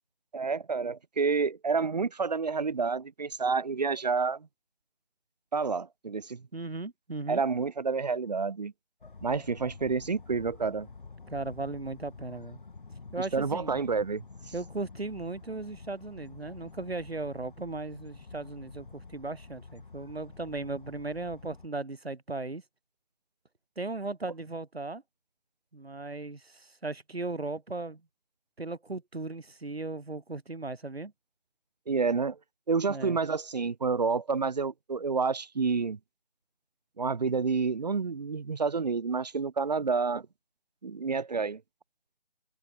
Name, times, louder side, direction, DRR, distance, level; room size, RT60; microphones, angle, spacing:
voice 1, 0.3-4.5 5.5-6.4 7.3-8.7 9.2-10.9 13.2-14.2 31.9-32.4 32.7-36.0 37.0-40.3 40.8-41.6, right 4 dB, 45° right, 1.2 m, -29 dB
voice 2, 6.5-7.4 11.3-12.6 13.1-13.8 14.5-22.6 23.8-25.0 25.7-28.0 28.6-31.1 32.9-33.2, right 3 dB, 85° right, 2.4 m, -37 dB
sound 1, 9.0-21.7, left 4 dB, 55° left, 4.3 m, -49 dB
open air
figure-of-eight pair, 160°, 30 cm